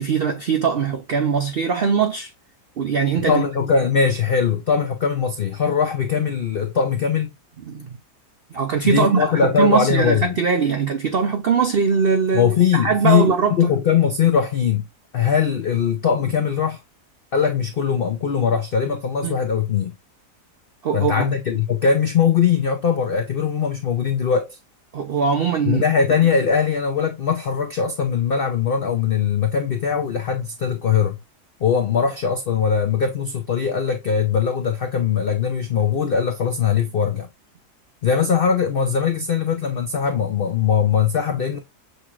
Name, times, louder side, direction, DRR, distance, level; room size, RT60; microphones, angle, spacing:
voice 1, 0.0-2.3 2.8-3.4 7.7-7.9 8.5-13.6 19.2-19.4 20.8-21.2 24.9-25.8, right 6 dB, 85° right, 0.5 m, -21 dB
voice 2, 3.3-7.3 8.8-10.4 12.3-14.8 15.1-16.8 17.3-19.9 20.9-24.5 25.6-31.2 31.6-37.3 38.0-41.6, left 7 dB, 75° left, 0.5 m, -20 dB
6.5 x 3.0 x 2.4 m
omnidirectional pair, 1.7 m